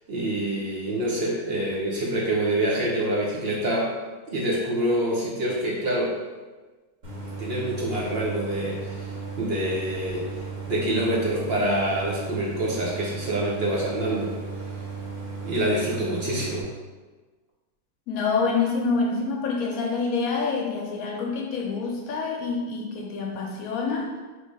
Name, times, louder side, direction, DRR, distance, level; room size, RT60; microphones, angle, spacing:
voice 1, 0.1-3.9 4.3-6.1 7.4-10.3 10.7-14.3 15.4-16.7, right 1 dB, 60° right, -4 dB, 0.7 m, -26 dB
Idling, 7.0-16.6, right 4 dB, 85° right, 1.8 m, -35 dB
voice 2, 18.1-24.1, left 4 dB, 70° left, 0 dB, 0.9 m, -27 dB
3.2 x 2.7 x 4.5 m, 1.3 s
omnidirectional pair, 1.6 m